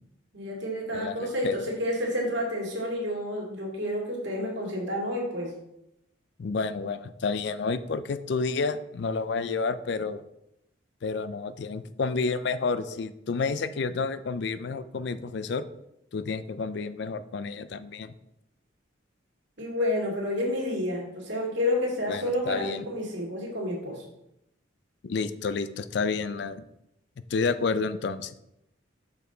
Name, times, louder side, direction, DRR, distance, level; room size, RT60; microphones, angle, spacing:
voice 1, 0.3-5.5 19.6-24.0, left 1 dB, 65° right, -2 dB, 2.1 m, -30 dB
voice 2, 0.9-1.6 6.4-10.2 11.0-15.7 16.1-18.1 22.1-22.8 25.0-26.6 27.3-28.4, left 4 dB, 60° left, 13 dB, 0.4 m, -30 dB
6.4 x 5.4 x 3.9 m, 0.83 s
head